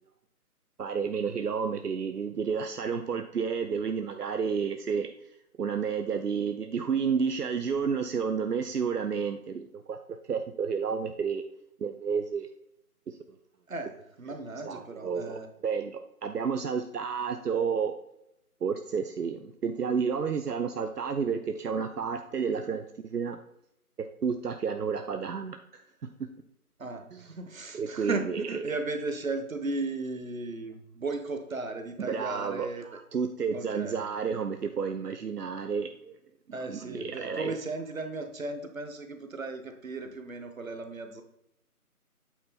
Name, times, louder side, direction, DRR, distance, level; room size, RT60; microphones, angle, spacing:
voice 1, 0.8-5.1 5.6-11.4 11.8-12.5 13.1-13.2 14.6-17.9 18.6-22.8 23.1-23.4 24.0-25.8 26.2-26.3 27.1-27.3 27.7-28.6 32.0-32.7 33.1-36.1 36.7-37.5, right 6 dB, 80° right, 7 dB, 0.7 m, -31 dB
voice 2, 13.7-15.5 26.8-33.0 33.5-34.0 36.5-41.2, right 3 dB, 60° right, 7 dB, 1.1 m, -36 dB
8.5 x 3.9 x 4.1 m, 0.79 s
figure-of-eight pair, 170°, 46 cm